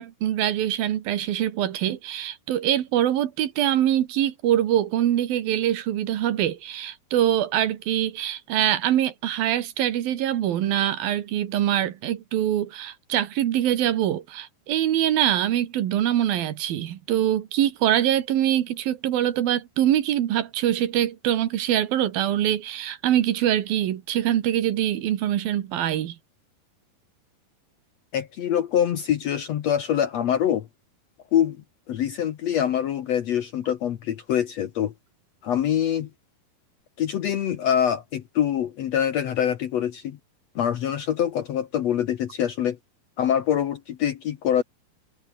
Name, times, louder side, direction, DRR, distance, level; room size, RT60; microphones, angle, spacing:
voice 1, 0.0-26.2, right 11 dB, 75° right, 3.3 m, -24 dB
voice 2, 28.1-30.7 31.3-31.6 31.9-34.9 35.4-36.1 37.0-40.2 40.6-42.8 43.2-44.6, left 9 dB, 65° left, 1.7 m, -24 dB
omnidirectional pair, 4.3 m